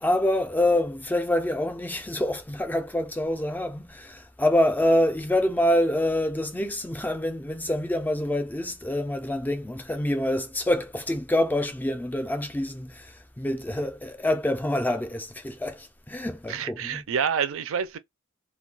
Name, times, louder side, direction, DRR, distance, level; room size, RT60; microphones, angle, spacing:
voice 1, 0.0-13.1 13.4-17.0, left 1 dB, 10° left, 0.3 m, -26 dB
voice 2, 16.5-18.0, right 7 dB, 65° right, 0.4 m, -28 dB
2.2 x 2.2 x 3.8 m
head